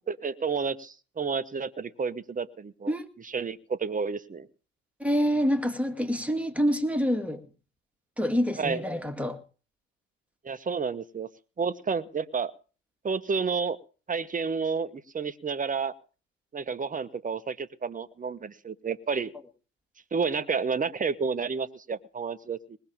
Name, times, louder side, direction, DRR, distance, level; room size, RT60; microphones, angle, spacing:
voice 1, 0.1-4.5 8.6-8.8 10.4-11.3 11.6-12.5 13.0-13.8 14.1-15.9 16.5-19.3 20.1-22.8, right 5 dB, 20° right, 1.2 m, -30 dB
voice 2, 5.0-7.4 8.2-9.4, equal, 5° right, 2.4 m, -26 dB
20.0 x 6.8 x 7.4 m
hypercardioid pair, 65°, 38 cm